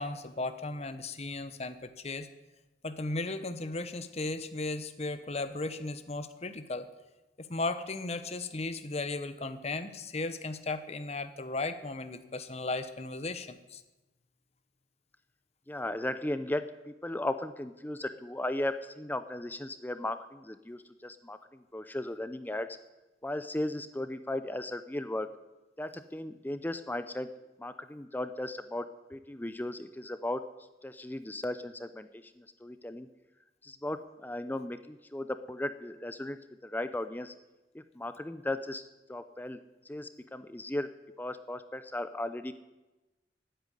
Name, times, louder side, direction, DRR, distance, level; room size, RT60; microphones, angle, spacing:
voice 1, 0.0-2.3 2.8-6.9 7.4-13.8, left 2 dB, 35° left, 10 dB, 1.0 m, -36 dB
voice 2, 15.7-16.6 17.0-22.7 23.2-25.3 25.8-27.3 27.6-30.4 30.8-32.1 32.6-33.1 33.6-36.4 36.6-37.3 37.7-38.8 39.1-39.6 39.9-40.9 41.2-42.5, left 1 dB, 10° left, 11 dB, 0.5 m, -36 dB
13.5 x 9.2 x 9.7 m, 1.1 s
head